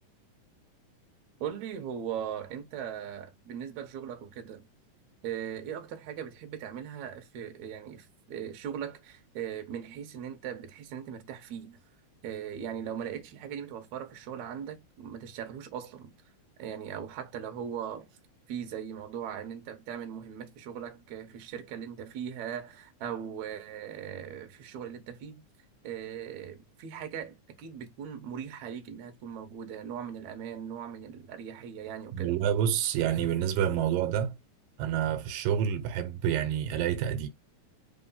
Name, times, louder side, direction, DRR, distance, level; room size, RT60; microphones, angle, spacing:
voice 1, 1.4-4.7 5.2-11.8 12.2-16.1 16.6-18.1 18.5-25.4 25.8-32.3, right 8 dB, 65° right, 2.2 m, -39 dB
voice 2, 32.1-34.4 34.8-37.3, right 9 dB, 85° right, 2.5 m, -28 dB
5.2 x 3.4 x 5.6 m
omnidirectional pair, 3.8 m